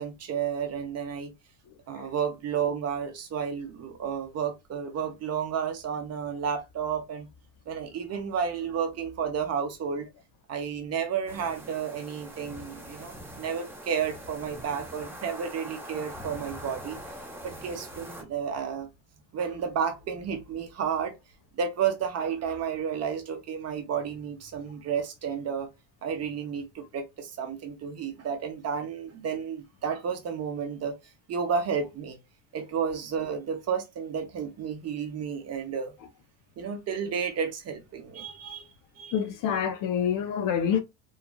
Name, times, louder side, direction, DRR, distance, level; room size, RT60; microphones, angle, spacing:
voice 1, 0.0-1.3 1.9-7.3 7.7-10.1 10.5-17.0 17.4-18.9 19.3-21.2 21.5-25.7 26.0-31.0 31.3-32.2 32.5-35.9 36.6-39.2, right 7 dB, 40° right, 0.8 m, -32 dB
sound 1, 11.3-18.2, equal, 5° right, 0.7 m, -43 dB
voice 2, 39.1-40.8, left 8 dB, 55° left, 0.6 m, -26 dB
3.2 x 2.3 x 2.2 m
cardioid pair, 115°, 40 cm